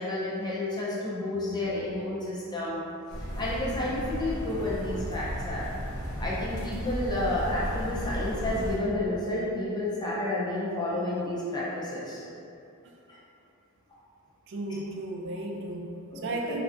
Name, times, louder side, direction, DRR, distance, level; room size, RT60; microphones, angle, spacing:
voice 1, 0.0-2.9 3.4-5.7 6.2-12.2 16.1-16.4, left 1 dB, 20° left, -7 dB, 0.5 m, -30 dB
sound 1, 3.1-8.8, equal, 85° left, 0.7 m, -34 dB
voice 2, 14.5-16.6, right 2 dB, 55° right, 0 dB, 0.3 m, -34 dB
3.2 x 2.4 x 2.5 m, 2.7 s
head